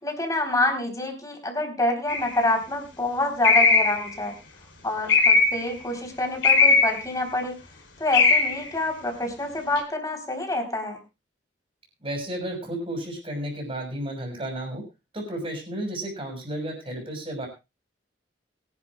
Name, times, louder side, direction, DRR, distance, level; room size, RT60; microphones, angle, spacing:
voice 1, 0.0-4.3 4.8-7.6 8.0-11.0, left 1 dB, 20° left, 3 dB, 3.8 m, -27 dB
sound 1, 2.1-2.4 3.4-4.1 5.1-5.7 6.4-7.0 8.1-8.6 9.8-9.9, left 4 dB, 70° left, 3.3 m, -18 dB
voice 2, 12.0-14.8 15.1-17.5, right 1 dB, 30° right, 2 dB, 6.1 m, -32 dB
23.0 x 11.5 x 2.4 m, 0.27 s
head